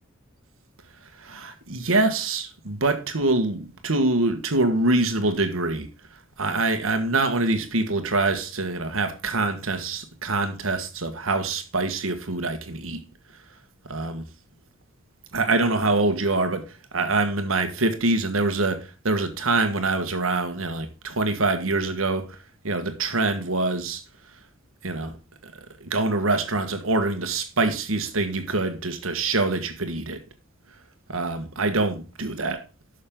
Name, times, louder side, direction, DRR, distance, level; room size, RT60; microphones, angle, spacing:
voice 1, 1.2-5.9 6.4-13.0 13.9-14.2 15.3-22.4 22.6-24.0 24.8-25.2 25.4-25.5 25.8-30.2 31.1-32.6, right 2 dB, 85° right, 1.6 m, -25 dB
11.5 x 6.6 x 3.8 m
head